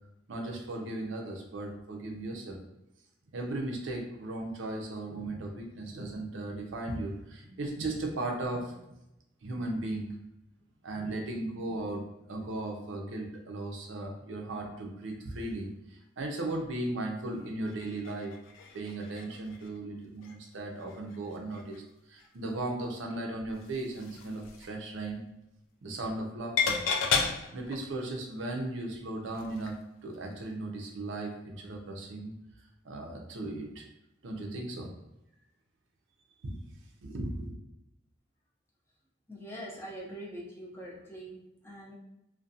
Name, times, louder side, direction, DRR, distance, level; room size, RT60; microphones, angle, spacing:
voice 1, 0.3-2.6 3.3-8.8 9.4-10.1 10.8-12.0 12.3-18.3 18.7-25.2 25.8-26.8 27.5-29.8 30.0-32.3 32.8-33.9 34.2-34.9 36.4-36.5 37.0-37.5, right 2 dB, 75° right, 2 dB, 0.5 m, -36 dB
sound 1, 17.7-19.8 20.2-20.4 20.8-21.8 22.2-22.3 23.4-24.8 26.0-26.3 26.6-27.9 29.3-29.8 30.1-30.2, left 5 dB, 80° left, 0.3 m, -34 dB
voice 2, 39.3-41.9, right 1 dB, 10° left, -4 dB, 0.4 m, -43 dB
2.4 x 2.2 x 2.6 m, 0.87 s
head